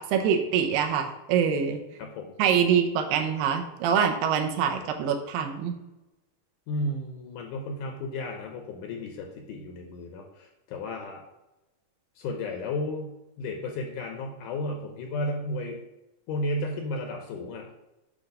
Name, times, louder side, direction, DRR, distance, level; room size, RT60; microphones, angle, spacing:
voice 1, 0.0-1.8 2.4-5.7, right 7 dB, 85° right, 4 dB, 2.4 m, -25 dB
voice 2, 2.0-2.3 6.7-11.2 12.2-15.8 16.3-17.7, left 1 dB, 75° left, 2 dB, 2.0 m, -33 dB
8.7 x 3.0 x 5.2 m, 0.96 s
omnidirectional pair, 4.0 m